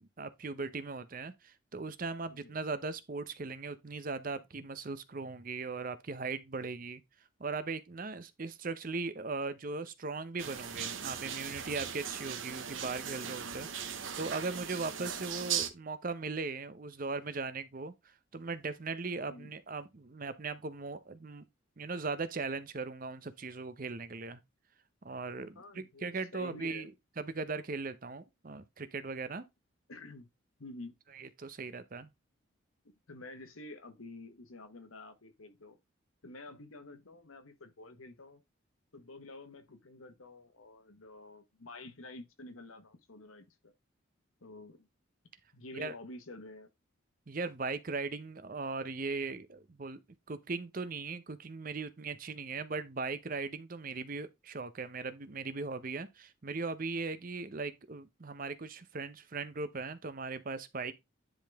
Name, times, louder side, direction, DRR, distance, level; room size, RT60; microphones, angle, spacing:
voice 1, 0.0-7.0 7.4-17.9 18.3-21.4 21.8-24.4 25.0-26.9 27.2-29.4 31.1-32.1 45.7-45.9 47.3-50.0 50.3-60.9, right 4 dB, 40° right, 0.7 m, -39 dB
sound 1, 10.4-15.7, right 8 dB, 70° right, 1.0 m, -38 dB
voice 2, 25.5-26.1 26.3-26.9 29.9-30.3 30.6-31.0 32.8-35.8 36.2-38.4 38.9-43.7 44.4-44.9 45.5-46.7, left 2 dB, 85° left, 1.3 m, -49 dB
10.5 x 3.9 x 3.4 m
head